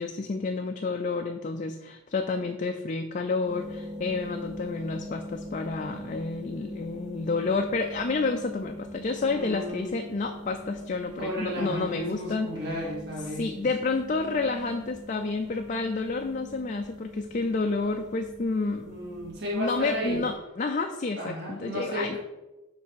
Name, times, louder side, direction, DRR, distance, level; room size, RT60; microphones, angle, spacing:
voice 1, 0.0-12.9 13.3-19.1 19.5-22.2, left 3 dB, 35° left, 4 dB, 0.4 m, -30 dB
sound 1, 3.4-20.3, left 1 dB, 15° right, 2.1 m, -42 dB
voice 2, 9.3-10.0 11.2-13.7 18.8-20.2 21.1-22.2, equal, 50° right, -3 dB, 1.9 m, -33 dB
7.2 x 3.4 x 6.2 m, 1.1 s
head